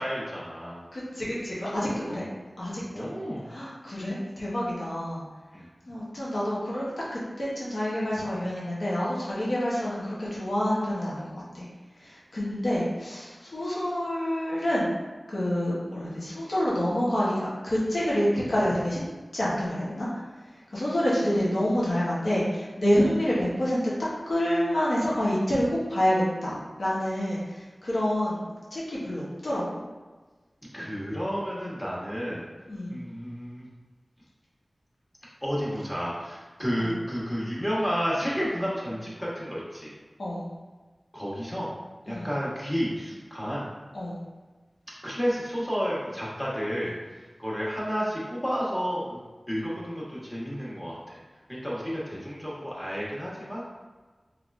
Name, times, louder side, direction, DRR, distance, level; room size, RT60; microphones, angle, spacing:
voice 1, 0.0-0.8 2.1-2.2 2.9-3.4 5.5-5.7 30.7-32.4 32.9-33.7 35.4-39.9 41.1-41.7 42.0-43.7 45.0-49.2 49.5-51.2 51.5-53.9, equal, 10° left, -6 dB, 1.1 m, -31 dB
voice 2, 0.9-2.2 2.6-3.1 3.5-5.2 5.9-11.7 12.0-14.9 15.3-19.0 19.3-23.8 24.3-29.8 30.8-30.9 32.7-33.0 36.8-36.9 40.2-40.5 42.1-42.3 43.9-44.3, equal, 75° left, -7 dB, 0.9 m, -28 dB
3.5 x 3.2 x 2.5 m, 1.3 s
wide cardioid pair, 65°, 0 cm